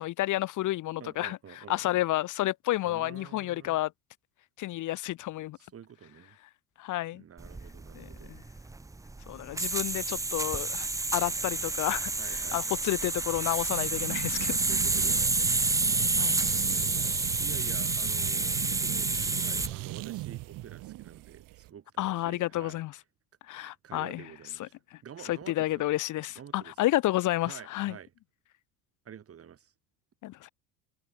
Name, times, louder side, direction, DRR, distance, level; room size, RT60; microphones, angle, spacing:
voice 1, 0.0-3.9 4.6-5.6 6.8-7.2 7.9-8.4 9.3-14.6 16.2-16.4 22.0-22.9 23.5-24.2 24.6-28.0 30.2-30.5, left 16 dB, 50° left, 1.0 m, -31 dB
voice 2, 1.0-2.0 2.8-3.8 5.6-6.4 7.1-8.4 12.2-12.8 14.7-15.6 16.2-17.2 17.4-19.1 19.4-22.8 23.5-24.7 25.0-25.9 26.4-26.7 27.4-28.1 29.0-29.7, right 8 dB, 35° right, 2.7 m, -48 dB
sound 1, 7.4-19.7, right 3 dB, 10° right, 0.7 m, -29 dB
sound 2, 13.7-21.7, right 18 dB, 55° right, 1.5 m, -38 dB
hypercardioid pair, 85°, 40 cm